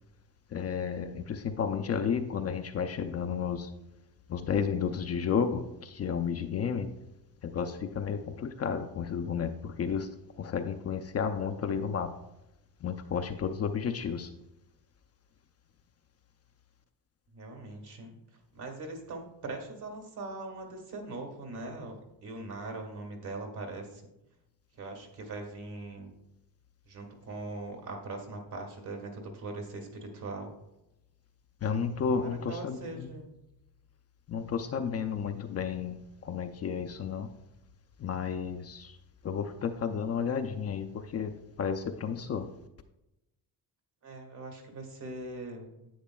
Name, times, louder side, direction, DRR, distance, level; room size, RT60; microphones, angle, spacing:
voice 1, 0.5-3.7 4.3-6.9 7.4-12.2 12.8-14.3 31.6-33.1 34.3-37.3 38.0-39.0 39.2-42.5, left 6 dB, 40° left, 6 dB, 0.4 m, -32 dB
voice 2, 17.3-18.2 18.5-24.0 24.8-26.1 26.9-30.5 32.0-33.3 44.0-45.9, right 2 dB, 65° right, 3 dB, 1.9 m, -41 dB
10.0 x 8.3 x 2.3 m, 0.91 s
cardioid pair, 145°, 42 cm